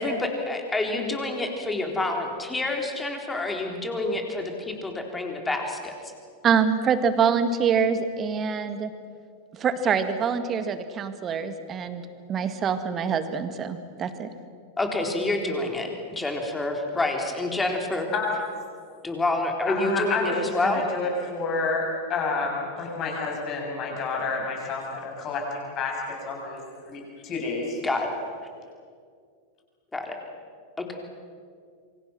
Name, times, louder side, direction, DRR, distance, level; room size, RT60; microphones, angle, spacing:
voice 1, 0.0-5.9 14.8-18.1 19.0-20.8 27.8-28.2 29.9-30.1 30.8-30.9, left 2 dB, 10° left, 2 dB, 3.9 m, -28 dB
voice 2, 6.4-8.9 9.5-12.0 12.3-14.3, right 6 dB, 25° right, 10 dB, 2.0 m, -25 dB
voice 3, 19.7-27.8, left 3 dB, 35° left, 0 dB, 7.5 m, -29 dB
27.5 x 25.0 x 6.2 m, 2.1 s
figure-of-eight pair, 90°, 0 cm